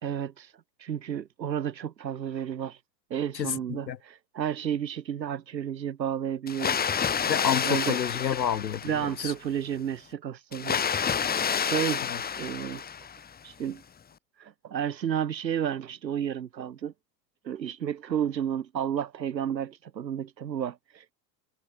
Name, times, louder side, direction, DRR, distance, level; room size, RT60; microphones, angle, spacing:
voice 1, 0.0-2.8 3.1-6.9 7.6-8.0 8.8-10.8 11.6-12.1 12.4-12.8 13.4-13.8 14.4-16.9 17.4-21.1, right 9 dB, 85° right, 1.2 m, -32 dB
voice 2, 3.3-4.0 7.3-9.3 12.0-12.2, left 9 dB, 85° left, 1.2 m, -30 dB
Water, 6.5-9.3 10.5-13.3, left 7 dB, 20° left, 1.0 m, -29 dB
figure-of-eight pair, 75°, 50 cm